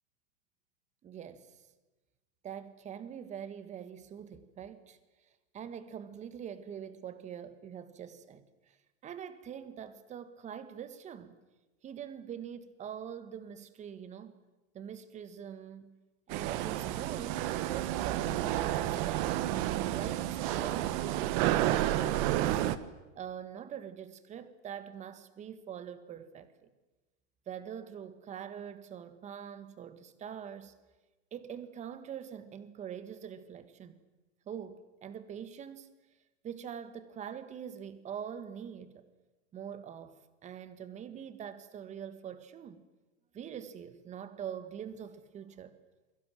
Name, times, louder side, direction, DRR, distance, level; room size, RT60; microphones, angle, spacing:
voice 1, 1.0-1.6 2.4-5.0 5.5-8.8 9.0-11.4 11.8-14.3 14.7-15.9 16.3-19.4 19.9-22.6 23.1-26.7 27.5-30.7 31.3-34.0 34.5-35.9 36.4-39.0 39.5-42.8 43.3-45.8, right 8 dB, 20° right, 1.7 m, -44 dB
sound 1, 16.3-22.8, right 13 dB, 40° right, 1.3 m, -30 dB
28.5 x 22.5 x 7.7 m
hypercardioid pair, 145°, 38 cm